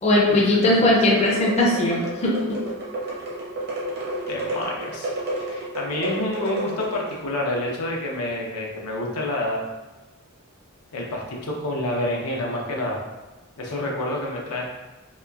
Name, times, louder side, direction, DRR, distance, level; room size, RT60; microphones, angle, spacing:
voice 1, 0.0-2.6, left 1 dB, 30° left, -3 dB, 0.4 m, -19 dB
sound 1, 1.2-7.2, right 1 dB, 50° right, 0.7 m, -31 dB
voice 2, 4.3-5.1 5.4-9.6 10.9-13.0 13.6-14.6, left 1 dB, 85° left, -1 dB, 0.5 m, -28 dB
2.9 x 2.3 x 2.3 m, 1.1 s
head